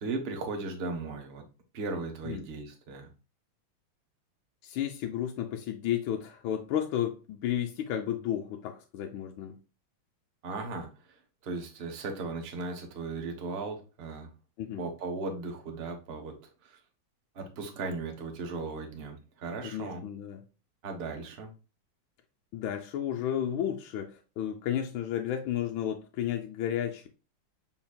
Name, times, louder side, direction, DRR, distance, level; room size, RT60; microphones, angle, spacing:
voice 1, 0.0-1.4 1.7-3.1 10.4-10.9 11.4-14.3 14.8-16.3 16.6-16.8 17.3-20.0 20.8-21.5, right 3 dB, 45° right, 0.9 m, -37 dB
voice 2, 4.6-9.6 14.6-14.9 19.6-20.4 22.5-27.1, left 10 dB, 75° left, 1.3 m, -32 dB
5.9 x 4.0 x 2.3 m
omnidirectional pair, 2.3 m